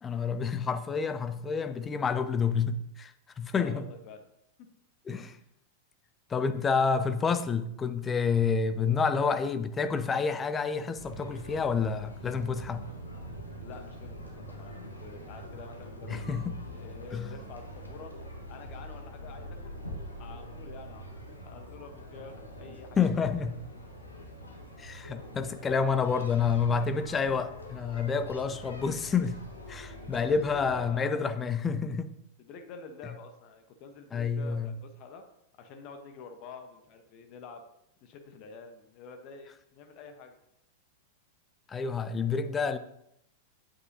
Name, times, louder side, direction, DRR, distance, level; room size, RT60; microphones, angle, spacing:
voice 1, 0.0-3.8 5.1-5.4 6.3-12.9 16.1-16.5 17.1-17.3 23.0-23.5 24.8-29.4 29.7-32.1 34.1-34.7 41.7-42.8, left 5 dB, 20° left, 0.5 m, -29 dB
voice 2, 3.5-4.2 5.2-5.4 13.6-16.2 16.7-18.1 18.5-19.7 20.2-23.0 23.3-23.4 30.1-31.5 32.4-35.2 35.6-37.7 38.0-40.3, left 4 dB, 40° left, 1.1 m, -48 dB
sound 1, 11.0-30.8, equal, 80° left, 1.4 m, -44 dB
8.8 x 7.9 x 2.9 m
figure-of-eight pair, 95°, 0 cm